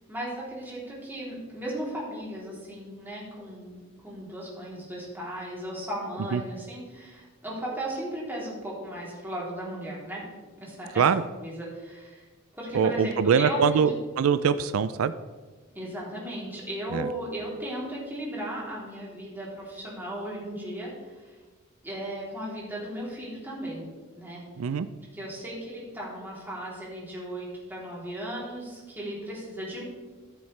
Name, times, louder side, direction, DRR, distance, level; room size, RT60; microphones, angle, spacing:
voice 1, 0.1-10.2 10.6-11.0 11.4-12.2 12.6-13.9 15.7-21.3 21.8-23.9 24.2-24.4 25.1-29.8, right 1 dB, 10° right, -6 dB, 3.2 m, -36 dB
voice 2, 12.7-15.1 16.9-17.1 24.6-24.9, right 6 dB, 85° right, 13 dB, 0.4 m, -23 dB
14.0 x 7.2 x 3.3 m, 1.3 s
head